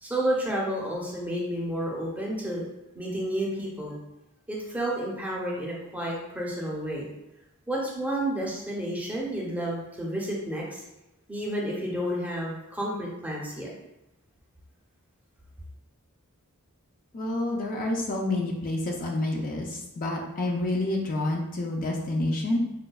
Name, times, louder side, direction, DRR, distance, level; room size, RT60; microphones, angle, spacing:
voice 1, 0.0-2.7 2.9-3.9 4.5-7.1 7.7-10.8 11.3-13.7, right 1 dB, 5° right, -4 dB, 0.6 m, -31 dB
voice 2, 17.1-22.6, left 2 dB, 40° left, -1 dB, 0.4 m, -28 dB
4.8 x 2.2 x 2.3 m, 0.93 s
head